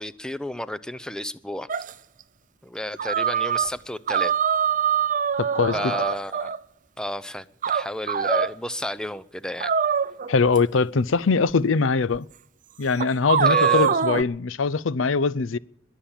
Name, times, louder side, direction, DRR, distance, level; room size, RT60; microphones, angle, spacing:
voice 1, 0.0-1.7 2.6-4.3 5.7-6.5 7.0-9.7 13.4-13.9, left 1 dB, 5° left, 0.6 m, -31 dB
sound 1, 1.7-1.9 3.0-3.7 4.1-6.6 7.6-8.5 9.6-10.6 11.5-11.6 12.1-12.2 13.0-14.2, right 7 dB, 40° right, 0.5 m, -23 dB
voice 2, 5.4-5.8 10.3-12.3 12.8-15.6, left 4 dB, 90° left, 0.6 m, -22 dB
21.5 x 7.4 x 8.7 m
head